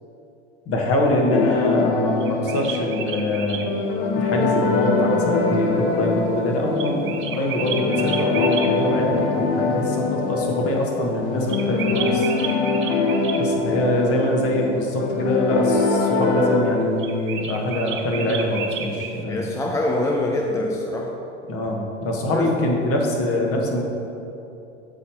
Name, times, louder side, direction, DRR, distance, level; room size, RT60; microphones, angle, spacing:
voice 1, 0.7-3.7 4.1-12.3 13.3-19.5 21.5-23.8, left 1 dB, 40° left, 0 dB, 1.4 m, -24 dB
sound 1, 1.3-16.6, left 3 dB, 60° left, 1.1 m, -23 dB
sound 2, 2.2-3.7 6.8-8.7 11.5-13.4 17.0-19.2, right 7 dB, 35° right, 0.7 m, -32 dB
voice 2, 19.3-21.2 22.3-22.6, left 1 dB, 10° left, 1 dB, 0.4 m, -25 dB
7.3 x 4.2 x 4.5 m, 2.9 s
hypercardioid pair, 85°, 35 cm